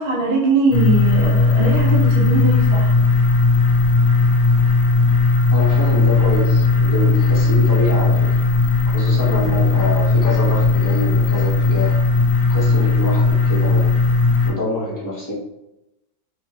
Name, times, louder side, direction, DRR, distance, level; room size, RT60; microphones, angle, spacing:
voice 1, 0.0-2.9, right 3 dB, 50° right, -3 dB, 0.6 m, -20 dB
sound 1, 0.7-14.5, left 3 dB, 80° left, 1.7 m, -16 dB
voice 2, 5.5-8.4 8.9-12.0 12.5-13.9 14.5-15.3, left 2 dB, 20° left, -6 dB, 0.5 m, -25 dB
5.2 x 2.1 x 2.7 m, 0.90 s
omnidirectional pair, 1.8 m